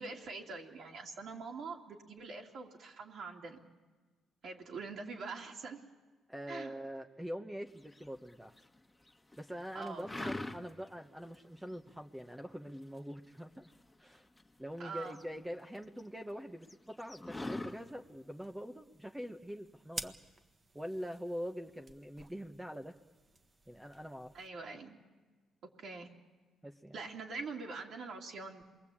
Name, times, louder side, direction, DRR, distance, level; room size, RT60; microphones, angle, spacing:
voice 1, 0.0-3.6 4.4-5.8 6.5-6.7 9.7-10.3 14.8-15.2 24.3-25.0 25.6-26.1 26.9-28.6, right 4 dB, 65° right, -1 dB, 2.7 m, -44 dB
voice 2, 6.3-8.5 9.4-13.7 14.0-14.3 14.6-20.1 20.7-22.9 23.7-24.3 26.6-26.9, equal, 10° right, 3 dB, 1.0 m, -44 dB
sound 1, 7.9-8.7 9.1-9.5 9.8-10.9 11.3-11.4 11.7-12.2 12.6-14.5 14.8-16.0 16.3-16.4 16.6-17.7, left 2 dB, 10° left, 1.8 m, -42 dB
sound 2, 17.7-24.5, right 3 dB, 30° right, 1.5 m, -51 dB
27.0 x 22.0 x 8.7 m, 1.3 s
cardioid pair, 90°, 0 cm